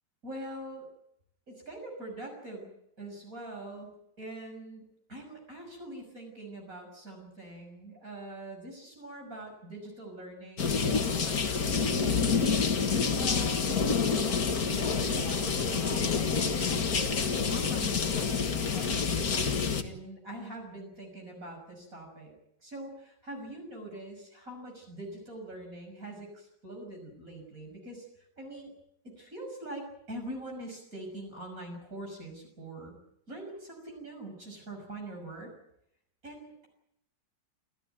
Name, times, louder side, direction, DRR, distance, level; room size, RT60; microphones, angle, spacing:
voice 1, 0.2-0.8 1.5-2.7 3.0-3.9 4.2-12.8 13.2-13.8 14.7-17.1 17.5-18.4 18.7-22.3 22.6-28.1 28.4-28.7 29.0-32.9 33.3-35.5 36.2-36.7, right 1 dB, 50° right, 2 dB, 6.6 m, -43 dB
sound 1, 10.6-19.8, left 5 dB, 55° left, 2.1 m, -28 dB
28.0 x 14.0 x 9.2 m, 0.77 s
omnidirectional pair, 1.9 m